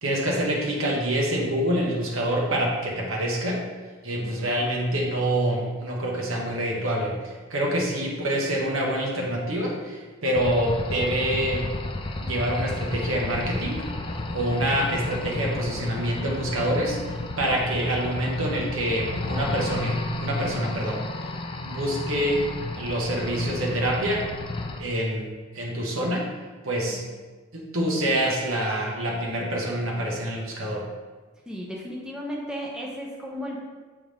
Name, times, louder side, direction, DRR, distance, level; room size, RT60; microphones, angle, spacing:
voice 1, 0.0-3.6 4.0-11.7 12.2-13.9 14.3-21.0 21.6-22.5 22.7-24.2 24.8-26.2 26.6-27.0 27.5-30.8, right 1 dB, 65° right, -2 dB, 1.2 m, -26 dB
voice 2, 4.2-4.5 26.9-27.0 31.5-33.6, equal, 5° right, -4 dB, 0.7 m, -35 dB
sound 1, 10.3-24.8, left 2 dB, 25° left, 0.4 m, -32 dB
7.8 x 3.5 x 3.4 m, 1.4 s
head